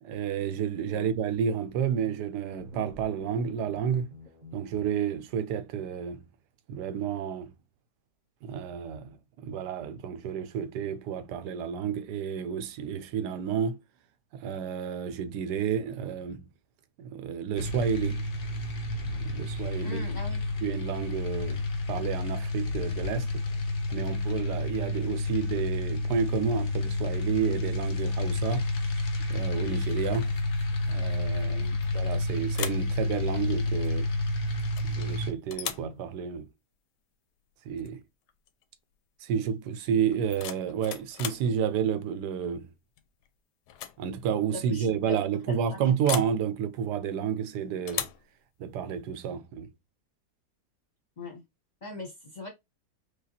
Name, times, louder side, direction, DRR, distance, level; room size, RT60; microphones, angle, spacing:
voice 1, 0.0-4.1 4.5-6.2 6.7-7.5 8.4-13.8 14.3-16.4 17.0-18.2 19.2-20.0 20.6-23.4 23.9-28.7 29.3-30.3 30.9-31.7 31.9-34.1 34.8-36.5 37.7-38.0 39.2-42.7 44.0-48.1 48.6-49.7, right 7 dB, 85° right, 1.2 m, -30 dB
sound 1, 2.4-4.9, equal, 35° right, 0.9 m, -49 dB
sound 2, 17.6-35.3, left 2 dB, 65° left, 0.5 m, -30 dB
voice 2, 19.8-20.4 31.5-31.8 44.5-45.2 45.5-45.9 51.2-51.4 51.8-52.5, left 2 dB, 35° left, 0.8 m, -40 dB
sound 3, 31.8-32.2 32.5-32.9 34.8-35.1 35.5-35.9 37.8-38.0 38.3-38.6 40.1-41.5 43.0-43.3 43.7-44.0 44.3-44.4 46.0-46.4 47.9-48.3, left 11 dB, 85° left, 1.1 m, -37 dB
4.8 x 2.3 x 2.8 m
omnidirectional pair, 1.7 m